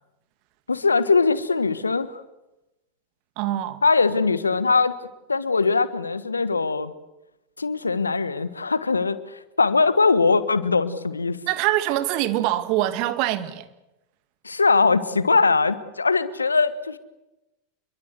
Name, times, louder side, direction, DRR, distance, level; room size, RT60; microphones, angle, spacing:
voice 1, 0.7-2.2 3.8-4.9 5.3-6.9 7.6-11.4 14.4-17.0, left 4 dB, 85° left, 1.4 m, -21 dB
voice 2, 3.4-3.8 11.5-13.7, right 14 dB, 50° right, 2.2 m, -24 dB
28.0 x 22.5 x 8.1 m
figure-of-eight pair, 90°, 0 cm